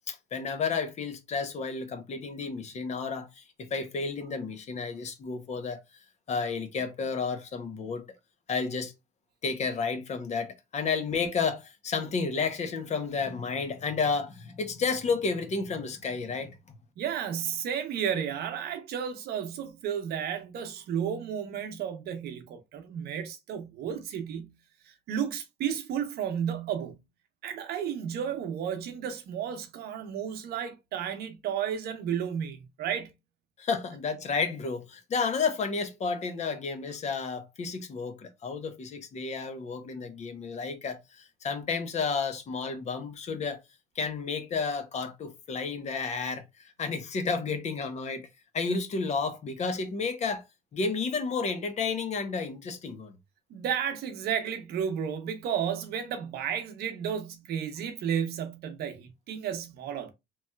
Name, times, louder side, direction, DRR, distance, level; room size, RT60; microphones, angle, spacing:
voice 1, 0.1-5.8 6.3-8.0 8.5-8.9 9.4-16.8 33.6-43.6 44.0-46.4 46.8-48.3 48.5-50.4 50.7-53.1, left 5 dB, 40° left, 0.7 m, -31 dB
voice 2, 17.0-24.5 24.9-27.0 27.4-33.1 53.5-60.1, right 8 dB, 70° right, 0.8 m, -32 dB
3.1 x 2.8 x 2.2 m
cardioid pair, 110°, 17 cm